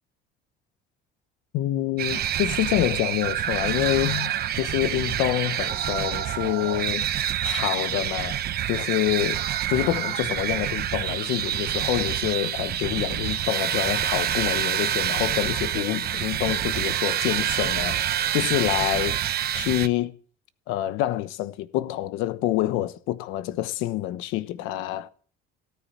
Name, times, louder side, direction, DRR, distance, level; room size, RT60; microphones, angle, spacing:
voice 1, 1.5-7.1 7.4-9.4 9.7-19.2 19.5-20.1 20.7-25.1, left 15 dB, 85° left, 1.1 m, -27 dB
sound 1, 2.0-19.9, right 11 dB, 50° right, 1.0 m, -27 dB
18.5 x 9.7 x 7.4 m
cardioid pair, 120°, 20 cm